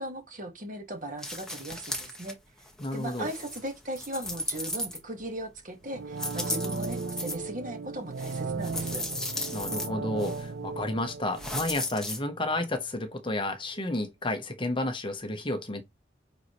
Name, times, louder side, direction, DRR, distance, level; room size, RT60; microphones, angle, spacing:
voice 1, 0.0-2.4 2.9-9.0, right 1 dB, 45° right, 1.8 m, -38 dB
sound 1, 1.2-2.3 2.7-5.3 6.1-7.3 8.2-9.9 10.2-10.4 11.4-12.2, left 1 dB, 5° left, 1.5 m, -36 dB
voice 2, 2.8-3.3 9.5-15.8, left 2 dB, 25° left, 1.0 m, -31 dB
sound 2, 5.8-12.7 13.0-13.1, right 4 dB, 80° right, 0.6 m, -36 dB
9.3 x 4.1 x 3.1 m
head